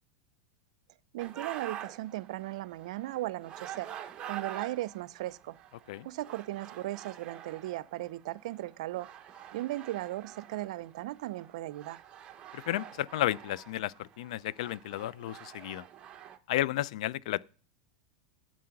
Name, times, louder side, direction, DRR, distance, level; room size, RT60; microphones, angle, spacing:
voice 1, 1.1-3.9 4.3-5.6 6.0-9.1 9.5-12.0, right 16 dB, 70° right, 0.5 m, -37 dB
sound 1, 1.2-16.4, right 10 dB, 30° right, 0.9 m, -46 dB
voice 2, 12.5-15.8 16.5-17.4, left 14 dB, 70° left, 0.3 m, -32 dB
7.6 x 7.5 x 5.9 m
supercardioid pair, 130°, 4 cm